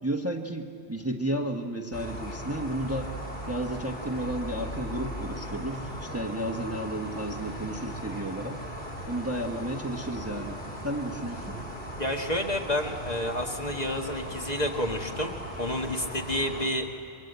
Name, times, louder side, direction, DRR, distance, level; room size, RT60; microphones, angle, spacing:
voice 1, 0.0-3.1 3.5-8.6 9.0-10.6 10.8-11.6, right 1 dB, 15° right, 2 dB, 1.2 m, -32 dB
sound 1, 1.9-16.7, equal, 55° left, 4.4 m, -38 dB
voice 2, 12.0-16.9, left 1 dB, 40° left, 2 dB, 1.7 m, -30 dB
27.5 x 22.0 x 8.1 m, 2.3 s
omnidirectional pair, 1.1 m